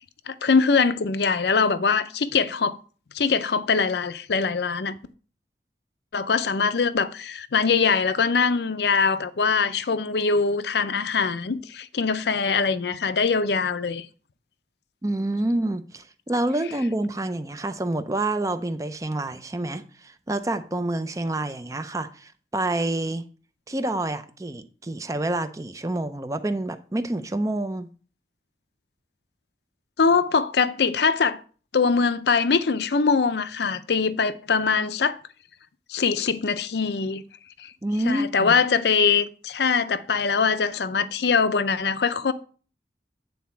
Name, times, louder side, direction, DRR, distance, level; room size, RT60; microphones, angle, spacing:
voice 1, 0.3-2.8 3.1-5.0 6.1-14.1 30.0-31.4 31.7-35.2 35.9-37.2 37.6-37.7 38.1-42.3, left 5 dB, 65° left, 0.5 m, -22 dB
voice 2, 15.0-23.3 23.7-27.9 37.8-38.5, right 1 dB, 20° right, 0.5 m, -28 dB
9.3 x 4.1 x 5.7 m
head